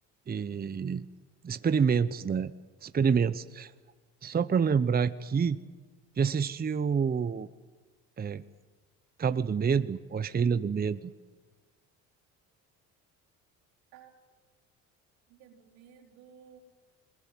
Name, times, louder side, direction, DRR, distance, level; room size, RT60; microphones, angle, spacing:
voice 1, 0.3-1.1 1.4-2.5 2.8-3.7 4.2-5.6 6.2-7.5 8.2-8.4 9.2-11.1, right 6 dB, 25° right, 13 dB, 0.8 m, -27 dB
voice 2, 15.3-16.6, right 8 dB, 90° right, 0 dB, 4.4 m, -55 dB
22.5 x 21.0 x 9.4 m, 1.4 s
supercardioid pair, 80°, 34 cm